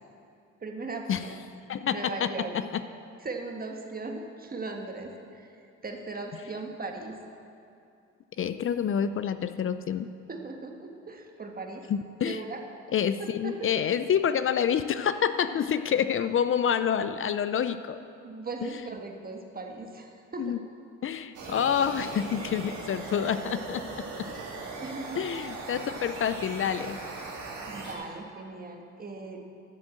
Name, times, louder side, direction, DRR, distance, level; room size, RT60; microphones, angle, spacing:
voice 1, 0.6-1.3 1.9-2.6 3.2-7.2 10.3-11.9 12.2-12.6 13.2-13.5 17.5-17.6 18.2-20.6 24.8-25.2 27.7-29.5, right 3 dB, 30° right, 3 dB, 1.4 m, -38 dB
voice 2, 1.7-2.6 8.4-10.1 11.9-12.4 12.9-18.0 18.6-18.8 20.4-20.6 21.0-23.8 25.2-27.0, left 8 dB, 45° left, 12 dB, 0.5 m, -28 dB
sound 1, 21.3-28.0, right 3 dB, 75° right, 2.5 m, -39 dB
11.5 x 6.2 x 7.6 m, 2.6 s
cardioid pair, 90°, 30 cm